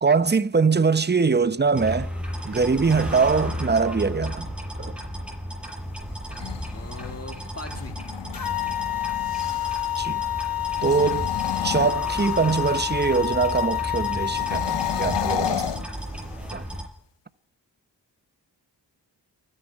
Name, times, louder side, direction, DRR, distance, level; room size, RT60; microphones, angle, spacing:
voice 1, 0.0-2.1 2.4-4.5 4.8-5.0 10.0-10.2 10.8-11.3 11.6-15.7 16.5-16.6, right 5 dB, 25° right, 0.8 m, -22 dB
sound 1, 1.7-16.8, equal, ahead, 6.5 m, -34 dB
sound 2, 6.1-9.9 10.6-12.7 14.3-16.6, left 9 dB, 75° left, 0.8 m, -33 dB
voice 2, 6.7-8.0, left 2 dB, 35° left, 1.9 m, -40 dB
sound 3, 8.3-15.5, left 14 dB, 55° left, 1.3 m, -28 dB
29.0 x 10.0 x 4.6 m
cardioid pair, 45°, 43 cm